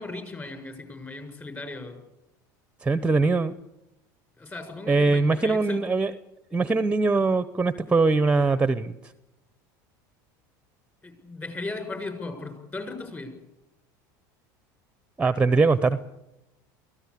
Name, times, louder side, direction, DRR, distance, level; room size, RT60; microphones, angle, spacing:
voice 1, 0.0-2.0 4.4-5.8 11.0-13.3, left 3 dB, 20° left, 6 dB, 6.8 m, -37 dB
voice 2, 2.8-3.5 4.9-6.1 6.5-8.9 15.2-16.0, right 3 dB, 10° right, 13 dB, 0.9 m, -22 dB
23.5 x 16.0 x 8.5 m, 0.92 s
supercardioid pair, 105°, 10 cm